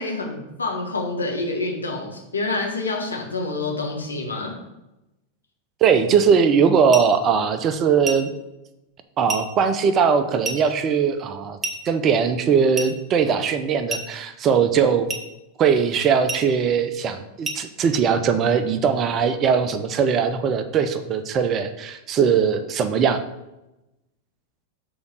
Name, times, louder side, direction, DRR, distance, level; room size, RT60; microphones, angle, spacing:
voice 1, 0.0-4.6, left 3 dB, 75° left, 0 dB, 1.5 m, -27 dB
voice 2, 5.8-8.3 9.2-11.6 11.9-15.1 15.6-23.2, right 6 dB, 30° right, 10 dB, 0.6 m, -20 dB
sound 1, 6.9-7.2 8.1-8.3 9.3-9.5 10.4-10.7 11.6-11.9 12.8-13.0 13.9-14.2 15.1-15.3 16.3-16.5 17.4-17.7, right 3 dB, 15° right, 1.0 m, -30 dB
7.0 x 3.9 x 6.4 m, 0.95 s
figure-of-eight pair, 90°, 0 cm